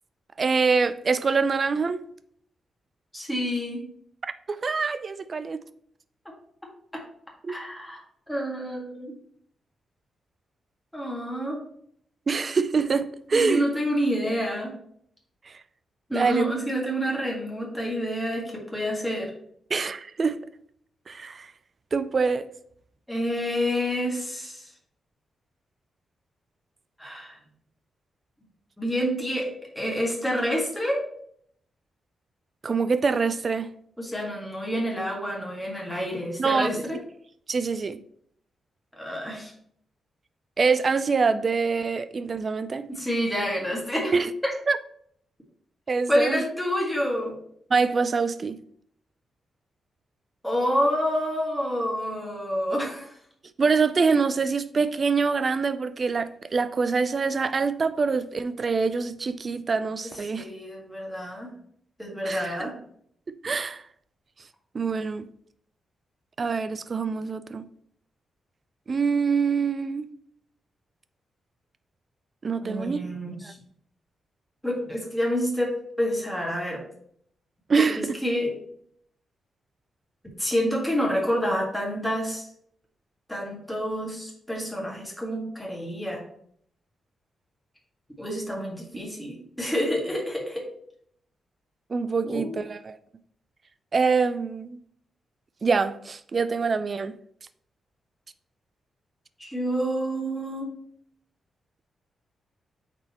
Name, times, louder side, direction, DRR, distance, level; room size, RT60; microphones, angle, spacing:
voice 1, 0.4-2.0 4.2-5.6 7.4-7.5 12.3-13.6 15.5-15.6 16.1-16.5 19.7-20.4 21.1-21.5 21.9-22.5 32.6-33.7 36.4-36.8 37.5-38.0 40.6-42.9 44.1-44.3 44.7-44.8 45.9-46.4 47.7-48.6 53.6-60.5 62.2-62.7 63.3-63.8 64.7-65.3 66.4-67.7 68.9-70.1 72.4-73.0 73.4-73.5 77.7-78.1 91.9-93.0 93.9-94.8 95.6-97.2, right 5 dB, 35° right, 0.4 m, -25 dB
voice 2, 3.1-3.8 7.5-8.0 8.3-9.1 10.9-11.6 13.3-14.7 16.1-19.3 23.1-24.7 27.0-27.4 28.8-31.0 34.0-37.0 38.9-39.5 42.9-44.2 44.4-44.5 46.1-47.4 50.4-53.1 60.3-61.5 62.0-62.8 72.6-73.6 74.6-76.8 77.8-78.5 80.4-82.5 83.3-86.2 88.2-90.7 92.2-92.6 99.4-100.7, equal, 5° left, 1.8 m, -28 dB
8.7 x 4.2 x 3.0 m
wide cardioid pair, 130°, 0 cm